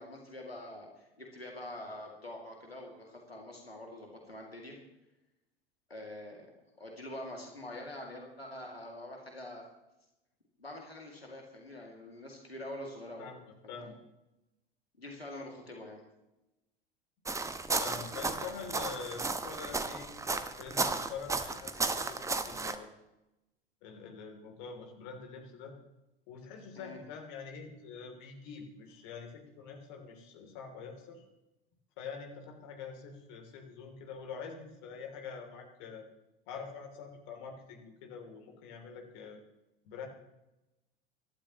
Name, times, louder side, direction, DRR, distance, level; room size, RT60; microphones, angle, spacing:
voice 1, 0.0-4.8 5.9-6.5 6.8-9.6 10.6-13.3 13.6-13.8 15.0-16.0 26.8-27.0, left 1 dB, 85° left, 0 dB, 2.4 m, -45 dB
sound 1, 17.2-22.8, right 3 dB, 10° right, 1.0 m, -34 dB
voice 2, 17.8-22.9 23.8-25.7 26.3-31.2 32.0-36.0 36.5-39.4 39.8-40.1, left 5 dB, 50° left, 3 dB, 3.0 m, -45 dB
24.5 x 12.5 x 3.0 m, 0.94 s
figure-of-eight pair, 80°, 30 cm